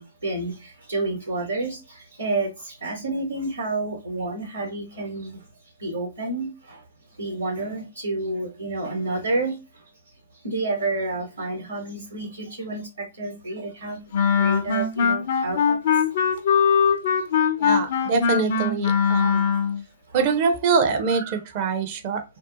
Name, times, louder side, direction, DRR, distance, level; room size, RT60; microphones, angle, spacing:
voice 1, 0.0-5.4 5.8-6.8 7.2-9.8 10.3-14.0 14.4-15.8 17.4-17.5 20.1-20.2, right 2 dB, 90° right, 1.0 m, -30 dB
Wind instrument woodwind instrument, 14.1-19.8, left 6 dB, 50° left, 0.4 m, -21 dB
voice 2, 17.6-19.5 20.1-22.2, right 5 dB, 40° right, 0.5 m, -24 dB
2.6 x 2.1 x 2.5 m
figure-of-eight pair, 115°, 0 cm